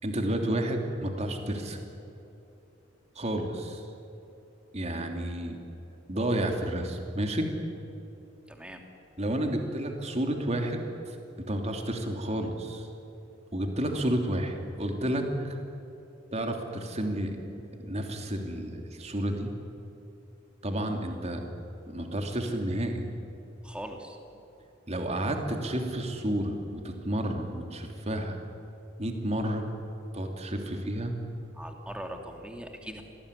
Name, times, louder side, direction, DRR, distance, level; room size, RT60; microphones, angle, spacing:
voice 1, 0.0-1.8 3.1-3.8 4.7-5.6 6.1-7.5 9.2-11.2 11.5-12.9 13.5-15.6 16.3-17.4 17.8-19.5 20.6-21.4 21.8-23.1 24.9-28.4 29.0-29.6 30.1-31.1, right 1 dB, 35° right, 4 dB, 3.0 m, -31 dB
voice 2, 8.5-8.8 23.6-24.2 31.5-33.0, right 1 dB, 5° right, 3 dB, 2.8 m, -40 dB
26.0 x 19.5 x 10.0 m, 2.9 s
head